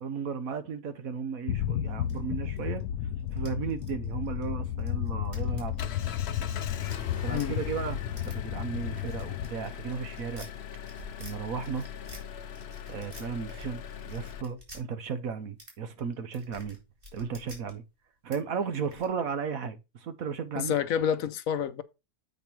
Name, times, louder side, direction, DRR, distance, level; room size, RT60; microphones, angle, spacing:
voice 1, 0.0-2.8 3.3-6.1 7.2-8.0 8.2-10.5 11.2-11.9 12.9-16.8 17.1-17.8 18.2-20.7, right 6 dB, 70° right, 1.4 m, -35 dB
sound 1, 1.5-9.5, left 11 dB, 85° left, 1.1 m, -33 dB
sound 2, 2.0-2.8 3.2-7.5 8.2-8.3 8.8-11.3 11.6-12.2 12.5-13.7 13.9-14.8 15.6-15.7 16.0-17.7 18.3-18.4 18.6-19.0, left 1 dB, 35° right, 3.2 m, -49 dB
Engine, 4.9-14.4, left 8 dB, 55° left, 0.8 m, -42 dB
voice 2, 20.6-21.8, left 8 dB, 70° left, 1.1 m, -28 dB
8.0 x 5.1 x 4.5 m
omnidirectional pair, 1.6 m